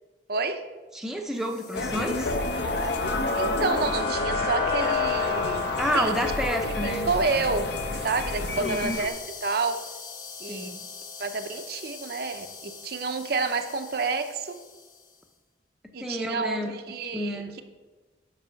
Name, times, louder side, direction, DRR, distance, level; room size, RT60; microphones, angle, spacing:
voice 1, 0.3-0.6 3.4-6.1 6.6-7.7 8.0-9.8 10.4-10.7 11.2-14.6 15.9-17.6, right 4 dB, 50° right, 7 dB, 0.6 m, -29 dB
voice 2, 0.9-2.3 5.8-7.1 8.6-8.9 10.5-10.8 16.0-16.8 17.1-17.6, equal, 5° right, 2 dB, 0.6 m, -30 dB
sound 1, 1.4-14.8, left 3 dB, 40° left, 1.7 m, -35 dB
sound 2, 1.7-9.1, left 2 dB, 55° left, 0.7 m, -29 dB
8.3 x 5.3 x 6.9 m, 1.3 s
head